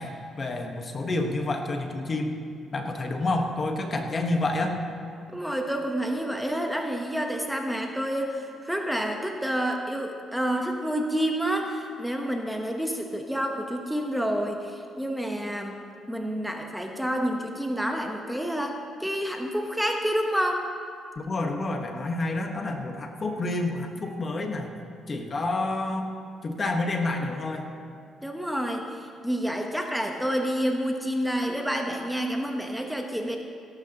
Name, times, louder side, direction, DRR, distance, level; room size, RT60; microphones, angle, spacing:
voice 1, 0.0-2.3 2.7-4.8 21.1-24.7 25.1-26.1 26.4-27.7, left 2 dB, 40° left, 4 dB, 1.3 m, -29 dB
voice 2, 5.3-15.8 16.1-20.6 28.2-33.4, equal, ahead, 2 dB, 1.1 m, -29 dB
17.5 x 12.0 x 3.0 m, 2.4 s
cardioid pair, 90°, 0 cm